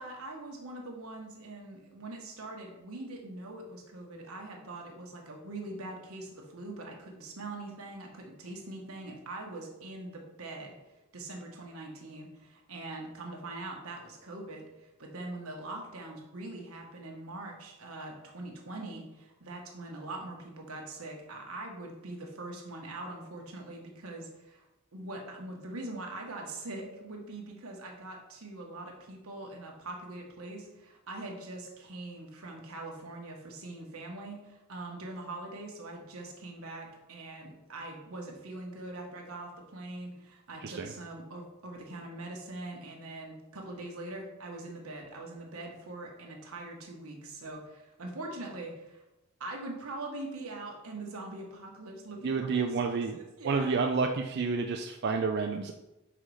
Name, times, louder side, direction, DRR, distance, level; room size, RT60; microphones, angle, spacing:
voice 1, 0.0-10.7 11.1-24.7 24.9-49.0 49.4-53.7, right 2 dB, 85° right, 1 dB, 1.3 m, -42 dB
voice 2, 52.2-53.2 53.4-55.7, right 4 dB, 50° right, 4 dB, 0.4 m, -29 dB
5.7 x 4.0 x 4.8 m, 0.98 s
head